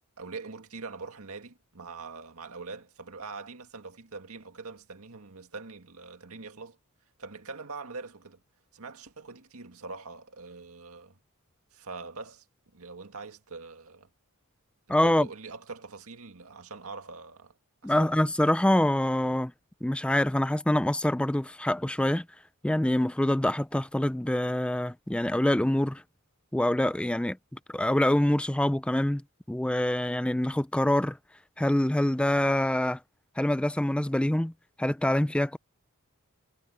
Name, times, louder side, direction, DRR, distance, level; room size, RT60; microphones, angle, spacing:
voice 1, 0.2-6.8 7.2-8.4 8.7-11.2 11.7-12.5 12.7-14.1 14.9-17.6 17.8-18.2, right 4 dB, 80° right, 2.0 m, -43 dB
voice 2, 14.9-15.3 17.8-19.5 19.8-22.2 22.6-26.0 26.5-27.4 27.7-29.2 29.5-31.2 31.6-33.0 33.4-34.5 34.8-35.6, left 1 dB, 5° left, 0.4 m, -25 dB
head